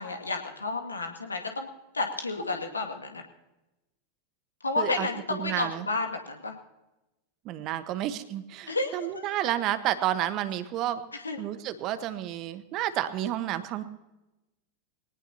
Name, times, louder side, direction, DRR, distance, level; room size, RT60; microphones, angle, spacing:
voice 1, 0.0-1.7 1.9-3.2 4.6-6.6 8.7-9.1 11.2-11.4, left 3 dB, 80° left, 4 dB, 2.2 m, -31 dB
voice 2, 4.8-5.9 7.4-11.0 11.4-13.8, right 12 dB, 40° right, 12 dB, 1.2 m, -31 dB
22.5 x 18.5 x 2.9 m, 0.98 s
figure-of-eight pair, 90°, 0 cm